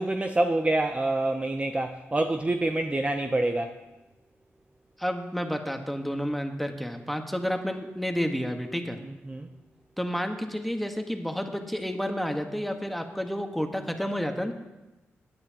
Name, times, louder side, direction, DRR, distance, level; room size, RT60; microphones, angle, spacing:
voice 1, 0.0-3.8 9.0-9.5, right 2 dB, 25° right, 5 dB, 0.6 m, -27 dB
voice 2, 5.0-9.0 10.0-14.5, equal, ahead, 5 dB, 1.3 m, -30 dB
16.0 x 9.6 x 2.9 m, 1.0 s
supercardioid pair, 50°, 5 cm